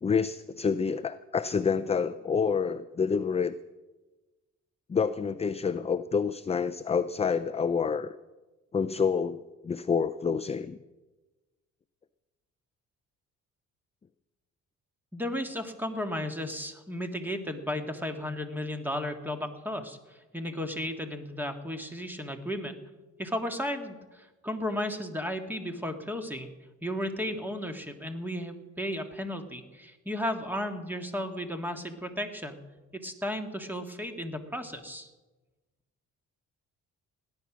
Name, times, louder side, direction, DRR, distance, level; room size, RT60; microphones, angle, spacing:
voice 1, 0.0-3.6 4.9-8.1 8.7-10.8, left 6 dB, 20° left, 13 dB, 0.5 m, -28 dB
voice 2, 15.1-22.8 23.2-26.5 26.8-32.6 33.0-35.1, left 1 dB, 5° right, 5 dB, 1.9 m, -34 dB
17.5 x 11.0 x 6.1 m, 1.2 s
cardioid pair, 90°, 30 cm